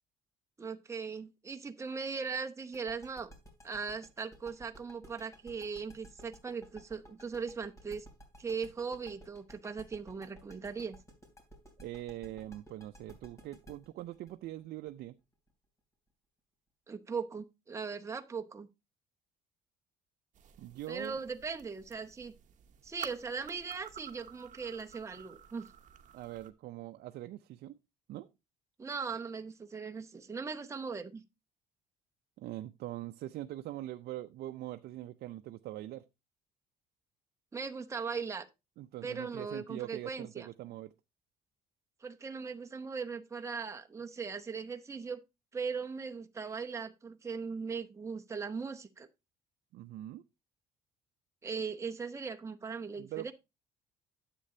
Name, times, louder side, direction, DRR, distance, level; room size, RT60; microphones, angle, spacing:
voice 1, 0.6-3.3 3.6-8.1 8.4-11.0 16.9-18.7 20.9-22.3 22.8-25.7 28.8-31.2 37.5-38.5 39.0-40.5 42.0-45.2 45.5-49.1 51.4-53.3, right 5 dB, 15° right, 0.8 m, -39 dB
sound 1, 2.7-15.5, equal, 20° left, 3.1 m, -55 dB
voice 2, 11.8-15.2 20.6-21.2 26.1-27.8 28.1-28.3 32.4-36.0 38.8-40.9 49.7-50.2 53.0-53.3, right 14 dB, 70° right, 0.5 m, -43 dB
sound 2, 20.3-26.5, right 9 dB, 50° right, 1.0 m, -52 dB
9.8 x 7.6 x 2.7 m
cardioid pair, 110°, 17 cm